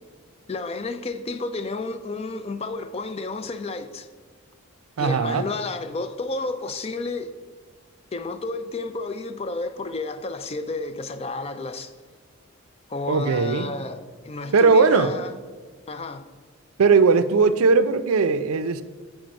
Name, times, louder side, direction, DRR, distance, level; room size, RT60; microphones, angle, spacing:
voice 1, 0.5-4.1 5.0-7.3 8.1-11.9 12.9-15.4 15.9-16.3, left 3 dB, 30° left, 0.4 m, -31 dB
voice 2, 5.0-5.5 13.1-13.7 14.5-15.1 16.8-18.8, right 4 dB, 80° right, 0.4 m, -18 dB
7.5 x 4.8 x 5.2 m
head